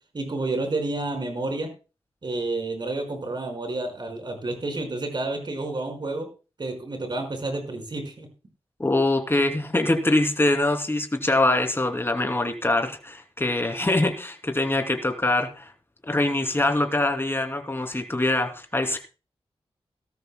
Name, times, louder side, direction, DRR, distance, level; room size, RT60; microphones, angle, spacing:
voice 1, 0.1-1.7 2.2-6.3 6.6-8.3, right 2 dB, 45° right, 5 dB, 5.0 m, -30 dB
voice 2, 8.8-15.7 16.1-19.0, left 2 dB, 20° left, 5 dB, 2.8 m, -24 dB
18.5 x 13.5 x 2.2 m, 0.32 s
wide cardioid pair, 75°, 10 cm